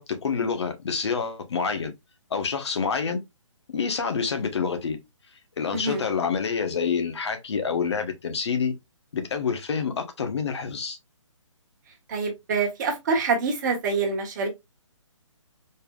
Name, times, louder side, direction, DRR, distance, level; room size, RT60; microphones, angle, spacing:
voice 1, 0.0-1.9 2.3-3.2 3.7-5.0 5.6-8.7 9.1-11.0, left 6 dB, 55° left, 1.2 m, -27 dB
voice 2, 5.7-6.0 12.1-14.5, right 4 dB, 35° right, 1.4 m, -26 dB
4.4 x 3.5 x 2.3 m
figure-of-eight pair, 145°, 17 cm